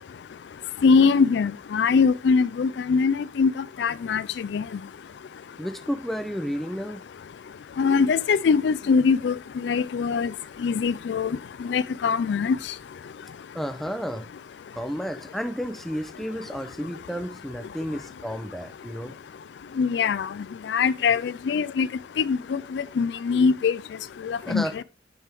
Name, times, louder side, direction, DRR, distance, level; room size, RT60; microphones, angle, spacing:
voice 1, 0.8-3.5 3.8-4.6 7.8-10.3 10.6-11.3 11.6-12.6 19.8-20.3 20.7-21.9 22.2-23.8 24.2-24.8, left 5 dB, 80° left, 0.4 m, -22 dB
voice 2, 5.6-7.0 13.5-14.3 14.7-19.1 24.4-24.8, equal, ahead, 0.5 m, -32 dB
9.7 x 3.5 x 4.7 m
head